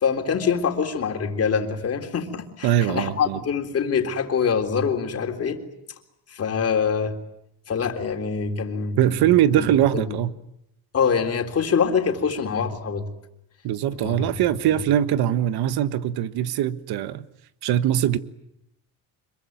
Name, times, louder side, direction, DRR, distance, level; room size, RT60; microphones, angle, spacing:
voice 1, 0.0-5.6 6.3-7.2 7.7-9.2 9.5-9.7 10.1-10.2 10.9-13.1 14.0-14.3, left 6 dB, 35° left, 3.7 m, -24 dB
voice 2, 2.6-3.4 9.0-10.3 13.6-17.3 17.6-18.2, right 11 dB, 70° right, 1.5 m, -21 dB
26.0 x 23.0 x 9.4 m
cardioid pair, 135°, 40 cm